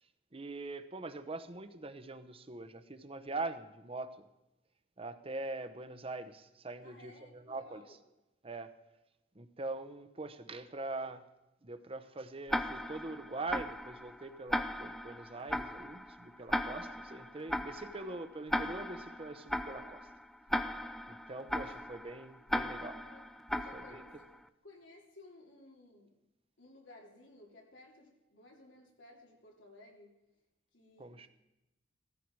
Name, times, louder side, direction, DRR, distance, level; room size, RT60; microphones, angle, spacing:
voice 1, 0.3-4.3 5.0-8.0 8.4-8.7 9.3-11.2 11.6-20.1 21.1-23.0 23.7-24.0 31.0-31.3, right 2 dB, 30° right, 11 dB, 0.9 m, -43 dB
voice 2, 6.8-8.0 21.6-21.7 22.5-23.3 23.5-24.3 24.6-26.1 26.6-30.1 30.7-31.3, left 1 dB, 80° left, 0 dB, 3.3 m, -57 dB
Tick-tock, 12.5-24.4, equal, ahead, 0.5 m, -38 dB
17.0 x 14.5 x 4.7 m, 0.97 s
head